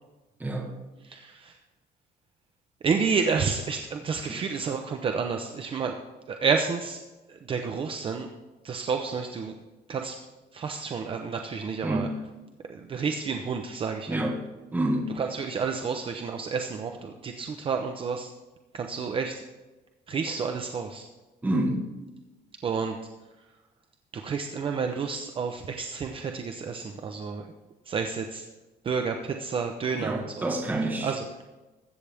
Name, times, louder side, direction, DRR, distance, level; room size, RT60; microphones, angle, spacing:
voice 1, 1.0-1.6 2.8-6.0 6.3-7.0 7.3-8.3 8.6-9.6 9.9-10.2 10.5-12.1 12.7-14.3 15.2-18.3 18.7-19.4 20.1-21.1 22.6-23.0 24.1-27.5 27.9-28.5 28.8-30.5 31.0-31.4, right 5 dB, 30° right, 4 dB, 0.7 m, -30 dB
voice 2, 11.8-12.1 14.1-14.4 14.7-15.1 21.4-21.9 30.0-31.1, right 1 dB, 10° right, 0 dB, 1.3 m, -28 dB
20.5 x 8.3 x 3.5 m, 1.1 s
cardioid pair, 170°, 17 cm